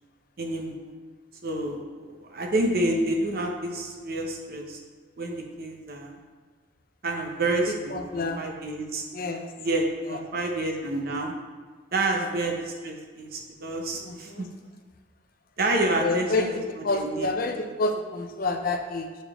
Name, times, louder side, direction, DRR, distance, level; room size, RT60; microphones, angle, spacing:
voice 1, 0.4-0.9 1.4-1.8 2.2-4.8 5.2-6.2 7.0-9.0 9.6-11.3 11.9-14.5 15.6-16.5 16.9-17.3, right 2 dB, 50° right, 2 dB, 0.9 m, -28 dB
voice 2, 7.7-8.4 9.1-9.5 10.0-10.2 12.1-12.3 14.0-14.5 16.0-19.2, left 2 dB, 50° left, 5 dB, 0.5 m, -29 dB
7.0 x 5.2 x 3.6 m, 1.5 s
head